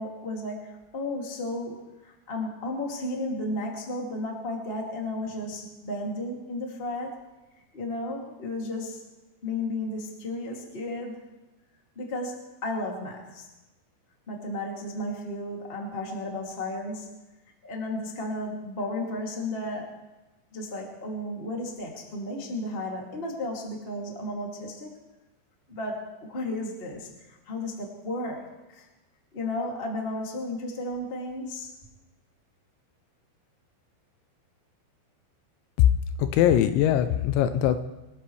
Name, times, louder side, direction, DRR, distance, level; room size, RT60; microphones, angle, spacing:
voice 1, 0.0-1.8 2.0-7.2 7.7-9.0 9.4-11.2 11.9-13.5 14.3-17.1 17.6-20.0 20.5-24.9 25.7-28.8 29.3-31.7, left 1 dB, 25° left, -1 dB, 1.4 m, -33 dB
voice 2, 36.2-37.8, left 11 dB, 80° left, 10 dB, 2.8 m, -21 dB
26.0 x 13.5 x 3.3 m, 1.1 s
omnidirectional pair, 5.4 m